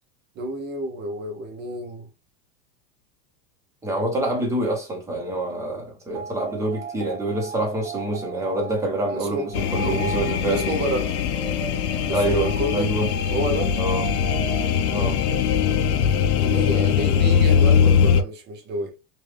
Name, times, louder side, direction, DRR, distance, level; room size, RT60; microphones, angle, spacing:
voice 1, 0.4-2.1 9.1-9.5 10.5-11.2 12.1-12.9 13.3-13.8 16.4-18.9, right 1 dB, 20° right, 0.7 m, -29 dB
voice 2, 3.8-10.9 12.1-13.1 13.8-14.1 14.9-15.2, right 1 dB, 5° right, 1.1 m, -26 dB
sound 1, 6.1-15.9, right 5 dB, 55° right, 1.3 m, -37 dB
sound 2, 9.5-18.2, left 7 dB, 70° left, 0.7 m, -21 dB
3.2 x 2.6 x 3.3 m
supercardioid pair, 150°, 46 cm